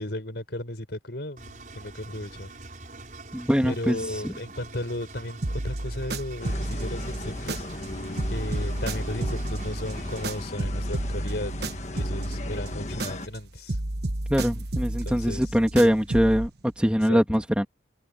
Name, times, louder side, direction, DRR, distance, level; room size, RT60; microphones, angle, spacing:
voice 1, 0.0-2.5 3.6-7.7 8.3-11.5 11.9-13.8 15.0-15.9 17.1-17.2, left 1 dB, 65° left, 4.6 m, -35 dB
Engine, 1.4-10.4, right 2 dB, 45° right, 6.3 m, -44 dB
voice 2, 3.3-4.3 14.3-16.5 16.8-17.7, equal, 5° right, 2.8 m, -23 dB
sound 1, 5.4-7.9 8.2-13.4 13.7-16.5, right 1 dB, 60° right, 1.2 m, -32 dB
sound 2, 6.4-13.3, left 1 dB, 40° left, 1.6 m, -37 dB
head